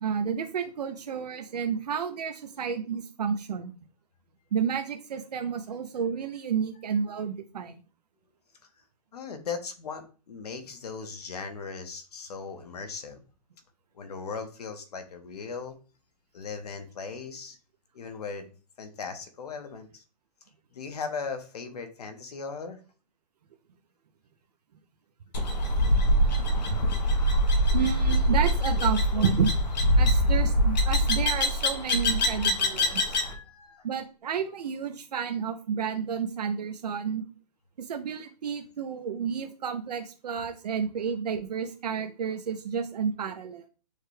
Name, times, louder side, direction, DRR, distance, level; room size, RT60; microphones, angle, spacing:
voice 1, 0.0-3.7 4.5-7.8 26.2-26.3 26.7-26.8 27.7-29.5 30.0-33.2 33.8-37.3 37.8-43.6, right 7 dB, 70° right, 6 dB, 0.6 m, -31 dB
voice 2, 9.1-13.2 13.9-15.7 16.3-17.6 17.9-18.5 18.8-20.0 20.7-22.8 27.3-27.5 32.2-32.5 32.8-33.9, left 5 dB, 65° left, 7 dB, 0.9 m, -38 dB
sound 1, 25.3-33.4, equal, 90° left, 1.1 m, -24 dB
6.4 x 2.2 x 3.2 m, 0.36 s
hypercardioid pair, 175°, 21 cm